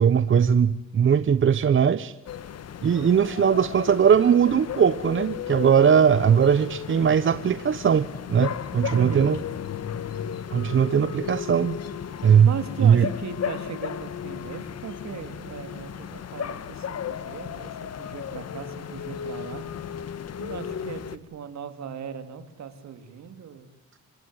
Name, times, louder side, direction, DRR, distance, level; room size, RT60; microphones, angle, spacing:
voice 1, 0.0-2.1 2.8-9.4 10.5-11.8 12.2-12.5 12.8-13.0, right 7 dB, 40° right, 14 dB, 1.0 m, -20 dB
sound 1, 2.2-21.2, left 8 dB, 55° left, 1.6 m, -35 dB
voice 2, 8.9-9.3 12.4-19.6 20.4-23.7, right 7 dB, 65° right, 9 dB, 3.6 m, -37 dB
29.0 x 17.0 x 9.5 m, 0.85 s
cardioid pair, 90°, 30 cm